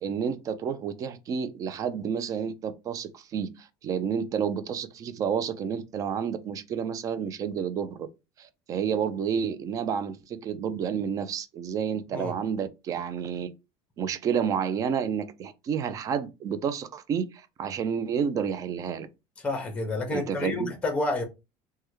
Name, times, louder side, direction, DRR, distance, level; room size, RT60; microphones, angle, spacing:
voice 1, 0.0-8.1 8.4-13.5 14.0-19.1 20.1-20.7, right 7 dB, 30° right, 0.3 m, -30 dB
voice 2, 19.4-21.2, left 2 dB, 10° left, 0.7 m, -29 dB
3.3 x 2.2 x 3.1 m
cardioid pair, 160°, 12 cm